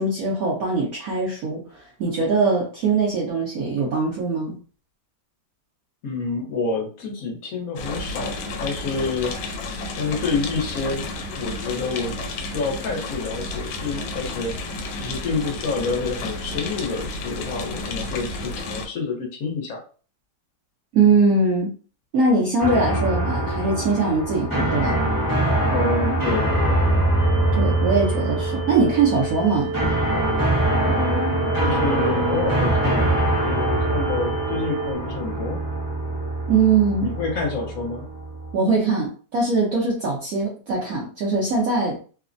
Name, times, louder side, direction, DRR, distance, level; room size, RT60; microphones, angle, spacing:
voice 1, 0.0-4.6 20.9-21.7 22.1-25.0 27.5-29.7 36.5-37.1 38.5-42.0, right 4 dB, 65° right, -3 dB, 1.0 m, -21 dB
voice 2, 6.0-9.3 9.9-11.1 11.4-14.6 15.0-19.8 25.7-26.8 30.8-33.1 33.4-35.6 37.0-38.1, left 4 dB, 65° left, 0 dB, 1.1 m, -28 dB
sound 1, 7.8-18.9, left 2 dB, 85° left, 1.2 m, -31 dB
sound 2, 22.6-38.5, right 1 dB, 25° right, 0.5 m, -23 dB
sound 3, 27.2-35.0, right 4 dB, 90° right, 1.3 m, -31 dB
3.1 x 2.0 x 2.5 m, 0.38 s
omnidirectional pair, 1.8 m